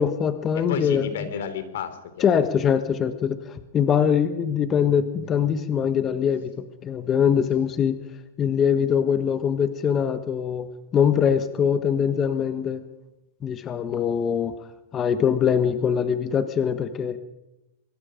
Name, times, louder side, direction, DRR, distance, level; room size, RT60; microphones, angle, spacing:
voice 1, 0.0-1.1 2.2-6.5 6.8-8.0 8.4-10.7 10.9-12.8 13.4-14.5 14.9-17.2, left 7 dB, 20° left, 10 dB, 1.3 m, -22 dB
voice 2, 0.5-2.6, left 7 dB, 75° left, 11 dB, 3.3 m, -32 dB
24.0 x 23.0 x 5.1 m, 0.95 s
supercardioid pair, 150°, 0 cm